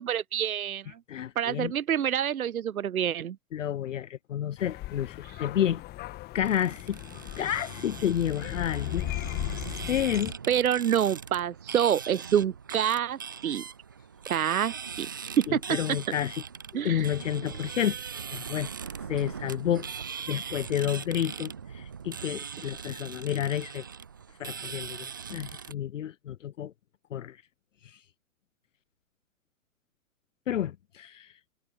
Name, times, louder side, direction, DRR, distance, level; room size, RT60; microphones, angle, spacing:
voice 1, 0.0-1.0 1.4-3.4 9.8-9.9 10.5-13.6 14.3-15.6 16.7-17.1, right 9 dB, 85° right, 0.6 m, -27 dB
voice 2, 1.1-1.7 3.5-5.8 6.3-7.0 7.4-9.0 9.9-10.3 15.5-16.4 16.7-18.0 18.3-18.7 19.1-19.9 20.3-23.8 24.4-26.7 27.1-27.4 27.8-28.0 30.5-31.3, left 10 dB, 60° left, 0.8 m, -30 dB
sound 1, 4.6-10.3, left 17 dB, 25° left, 1.7 m, -37 dB
sound 2, 6.4-25.7, right 6 dB, 15° right, 0.3 m, -40 dB
figure-of-eight pair, 115°, 42 cm